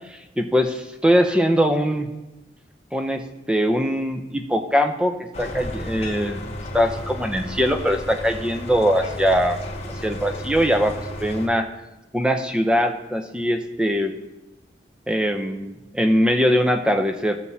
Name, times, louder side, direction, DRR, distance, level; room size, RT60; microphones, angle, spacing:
voice 1, 0.1-2.1 2.9-6.4 6.7-9.6 10.0-11.0 11.2-11.7 12.1-14.1 15.1-17.4, equal, 5° right, 5 dB, 0.6 m, -21 dB
sound 1, 5.3-11.5, left 1 dB, 35° left, 1.1 m, -33 dB
15.5 x 7.2 x 2.8 m, 0.99 s
head